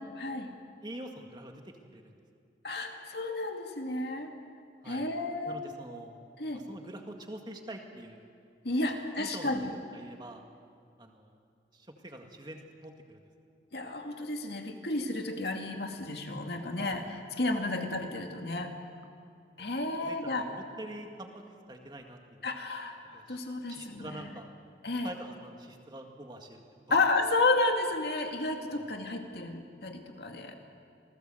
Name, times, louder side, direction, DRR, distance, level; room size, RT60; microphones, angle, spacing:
voice 1, 0.2-0.5 2.6-4.3 4.9-5.6 6.4-6.6 8.6-9.8 13.7-18.7 19.6-20.5 22.4-24.3 24.8-25.1 26.9-30.5, left 2 dB, 65° left, 3 dB, 2.4 m, -32 dB
voice 2, 0.8-2.1 4.8-5.0 5.4-6.1 6.5-8.2 8.7-8.8 9.2-9.6 9.9-10.5 11.0-11.4 11.7-13.2 16.8-17.1 17.7-17.9 19.6-21.4 21.7-22.4 23.1-23.4 23.7-24.5 25.0-27.0 28.7-28.9, right 1 dB, 25° right, 3 dB, 2.0 m, -46 dB
27.0 x 19.0 x 7.9 m, 2.4 s
head